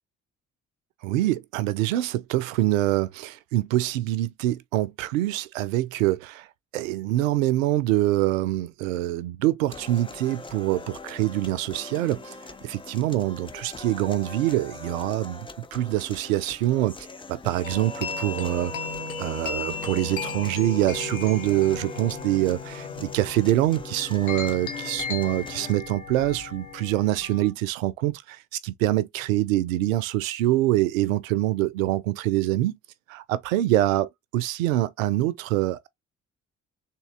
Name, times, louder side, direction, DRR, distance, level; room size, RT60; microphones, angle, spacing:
voice 1, 1.0-6.5 6.7-12.3 12.6-15.4 15.7-16.9 17.3-18.7 19.2-32.8 33.1-35.9, right 15 dB, 80° right, 0.5 m, -25 dB
sound 1, 9.7-25.7, left 3 dB, 15° left, 0.5 m, -42 dB
sound 2, 17.6-27.5, left 5 dB, 90° left, 0.7 m, -35 dB
3.7 x 2.8 x 3.1 m
figure-of-eight pair, 45°, 40 cm